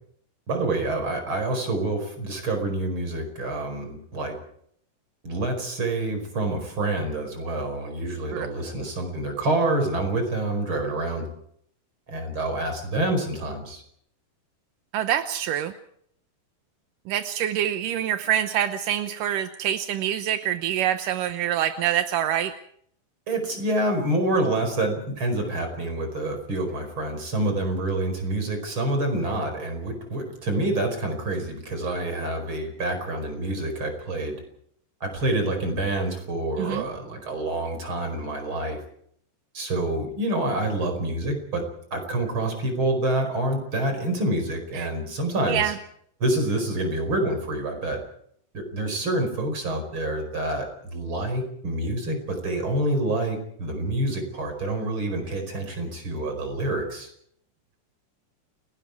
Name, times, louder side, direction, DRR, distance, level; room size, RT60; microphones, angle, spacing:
voice 1, 0.5-4.4 5.2-11.3 12.1-13.8 23.3-34.4 35.0-38.8 39.5-41.6 41.9-45.7 46.2-48.0 48.5-57.1, right 2 dB, 30° right, 5 dB, 5.4 m, -27 dB
voice 2, 14.9-15.7 17.1-22.5 36.6-36.9 44.8-44.9 45.5-45.8, right 11 dB, 75° right, 9 dB, 2.0 m, -25 dB
29.5 x 19.0 x 4.7 m, 0.66 s
omnidirectional pair, 4.8 m